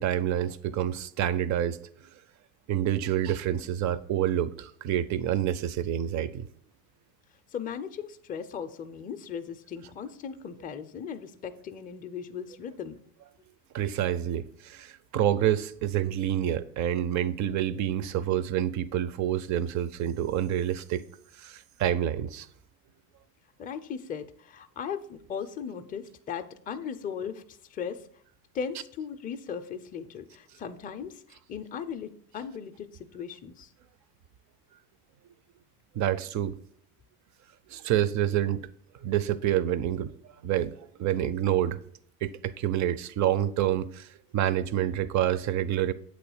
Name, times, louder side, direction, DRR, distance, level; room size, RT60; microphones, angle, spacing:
voice 1, 0.0-2.1 2.7-6.5 13.7-21.0 21.3-22.5 35.9-36.6 37.7-38.6 39.0-40.1 40.4-41.8 42.2-45.9, right 11 dB, 40° right, 0.4 m, -28 dB
voice 2, 7.5-13.0 23.6-27.4 27.7-28.1 28.5-33.7, left 7 dB, 20° left, 0.4 m, -37 dB
8.0 x 3.1 x 4.8 m
hypercardioid pair, 75°, 49 cm